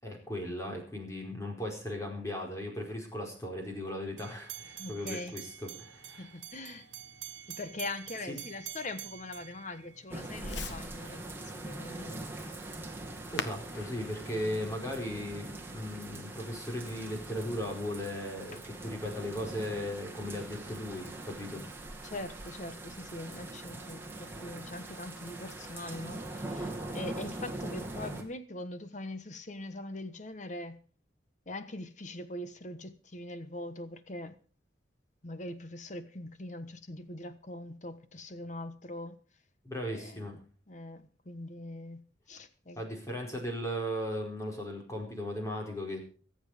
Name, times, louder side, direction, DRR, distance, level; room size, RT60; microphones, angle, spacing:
voice 1, 0.0-6.3 8.3-8.4 13.3-21.6 39.6-40.3 42.8-46.0, equal, 15° left, 4.7 m, -37 dB
sound 1, 4.2-10.4, right 12 dB, 75° right, 1.6 m, -46 dB
Fireworks, 4.6-16.0, left 4 dB, 75° left, 1.5 m, -49 dB
voice 2, 4.8-5.4 6.2-6.9 7.5-12.3 14.3-14.7 22.0-30.8 31.5-34.3 35.2-39.2 39.9-40.4 40.7-42.0 42.3-42.8, left 2 dB, 40° left, 1.3 m, -42 dB
sound 2, 10.1-28.2, right 2 dB, 10° right, 2.4 m, -42 dB
24.5 x 8.2 x 5.1 m
head